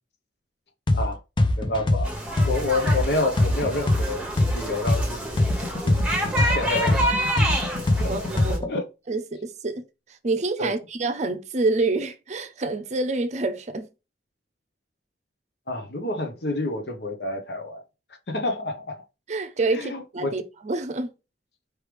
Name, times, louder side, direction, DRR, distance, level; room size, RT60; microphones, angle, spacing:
sound 1, 0.9-1.1 1.4-5.1 5.4-8.8, left 2 dB, 25° left, 0.5 m, -22 dB
voice 1, 1.5-2.1 2.4-5.5 5.8-6.0 6.4-8.3 8.7-8.8 10.6-10.7 15.7-17.8 18.3-19.0 19.7-20.4, left 2 dB, 65° left, 0.9 m, -29 dB
sound 2, 2.0-8.6, right 1 dB, 5° right, 1.1 m, -28 dB
voice 2, 8.1-8.7 9.1-9.8 10.2-13.9 19.3-21.1, right 3 dB, 40° right, 0.6 m, -27 dB
4.7 x 3.2 x 3.3 m
head